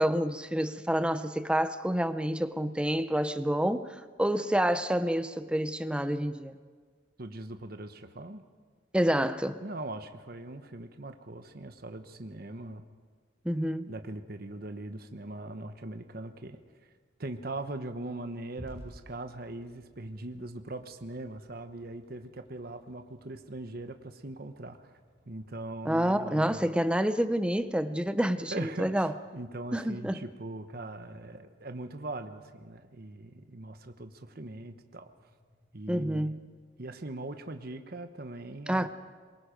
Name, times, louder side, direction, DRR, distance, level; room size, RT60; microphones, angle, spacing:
voice 1, 0.0-6.5 8.9-9.6 13.4-13.9 25.8-29.1 29.7-30.2 35.9-36.4 38.7-38.9, equal, 5° right, 0.6 m, -28 dB
voice 2, 7.2-8.4 9.6-12.8 13.9-16.6 17.2-24.9 25.3-26.6 28.5-35.1 35.7-36.4 36.8-38.9, right 2 dB, 50° right, 1.0 m, -41 dB
sound 1, 18.6-36.8, equal, 65° left, 6.7 m, -58 dB
24.0 x 22.0 x 5.2 m
head